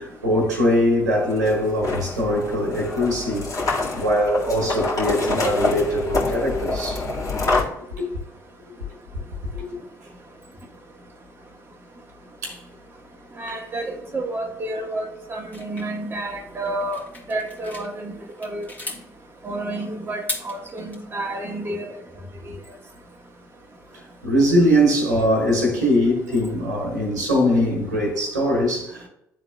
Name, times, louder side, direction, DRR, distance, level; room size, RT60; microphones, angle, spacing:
voice 1, 0.0-3.5 3.9-7.0 8.0-8.1 9.5-9.7 12.4-12.6 23.9-29.1, equal, 85° right, 1.5 m, -21 dB
sound 1, 1.1-7.6, left 2 dB, 40° left, 2.0 m, -26 dB
voice 2, 13.4-17.0 17.3-18.1 18.4-18.7 19.4-22.0, right 2 dB, 25° right, 1.1 m, -30 dB
sound 2, 15.5-17.9 18.3-19.0 20.1-21.0, left 1 dB, 20° left, 1.8 m, -35 dB
11.0 x 3.8 x 2.3 m
figure-of-eight pair, 50°, 9 cm